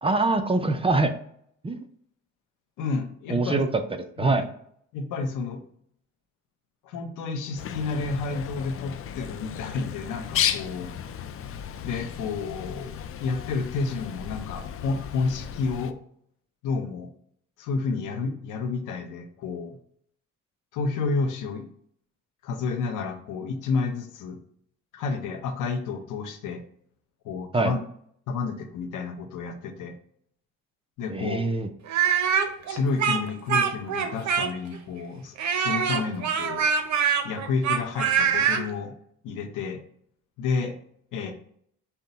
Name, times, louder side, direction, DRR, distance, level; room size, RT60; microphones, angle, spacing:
voice 1, 0.0-1.1 1.6-1.8 3.3-3.7 4.2-4.4 27.5-27.7 31.1-31.7, right 3 dB, 20° right, 7 dB, 0.5 m, -23 dB
voice 2, 2.8-3.6 4.2-4.5 4.9-5.6 6.8-10.9 11.8-16.0 16.6-17.1 17.6-19.8 20.7-21.7 22.4-24.4 24.9-26.6 27.2-27.8 28.3-30.0 31.0-31.4 32.7-36.6 37.2-38.9 39.2-39.8 40.4-40.8 41.1-41.3, left 4 dB, 85° left, 6 dB, 0.7 m, -30 dB
Bird, 7.6-15.9, left 9 dB, 50° left, 0.4 m, -34 dB
Speech, 31.9-34.8 35.4-38.6, right 7 dB, 65° right, 0.7 m, -24 dB
5.6 x 2.2 x 3.9 m, 0.65 s
cardioid pair, 90°, 30 cm